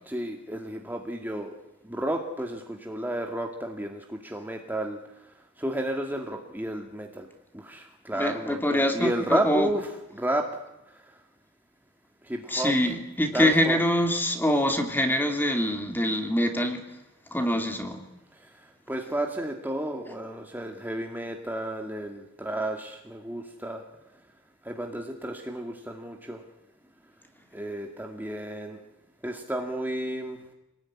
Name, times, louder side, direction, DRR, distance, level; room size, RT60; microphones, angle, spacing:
voice 1, 0.1-1.5 1.8-5.0 5.6-7.3 7.5-10.6 12.2-12.7 13.3-13.8 18.9-23.8 24.6-26.4 27.5-28.8 29.2-30.4, right 1 dB, 10° right, 2 dB, 2.2 m, -32 dB
voice 2, 8.1-9.7 12.5-16.8 17.3-18.0, left 1 dB, 10° left, 4 dB, 2.9 m, -25 dB
27.5 x 20.0 x 9.9 m, 0.92 s
head